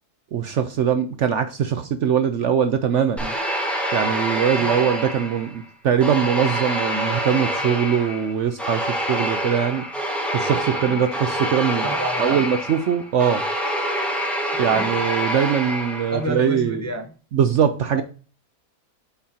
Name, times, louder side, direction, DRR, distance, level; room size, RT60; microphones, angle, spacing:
voice 1, 0.3-3.3 3.9-9.8 10.3-11.9 12.2-13.4 14.6-16.9 17.3-18.0, right 8 dB, 65° right, 9 dB, 0.8 m, -22 dB
sound 1, 3.2-5.6 6.0-16.3, equal, ahead, 1.4 m, -26 dB
voice 2, 11.8-12.5 14.5-14.9 16.1-17.2 17.9-18.0, right 1 dB, 15° left, 4 dB, 0.5 m, -30 dB
8.4 x 5.8 x 2.8 m, 0.37 s
omnidirectional pair, 1.7 m